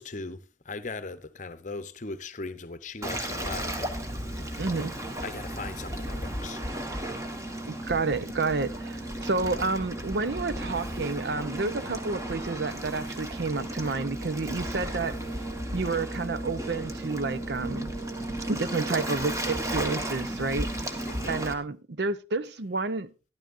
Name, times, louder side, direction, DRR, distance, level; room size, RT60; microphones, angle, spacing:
voice 1, 0.0-3.9 5.2-6.6 21.0-21.3, left 3 dB, 40° left, 0.7 m, -38 dB
Waves surf, 3.0-21.5, right 1 dB, 15° right, 1.2 m, -34 dB
voice 2, 4.6-4.9 7.7-15.2 15.7-17.9 18.5-23.1, right 3 dB, 65° right, 0.6 m, -30 dB
13.0 x 12.0 x 2.5 m
head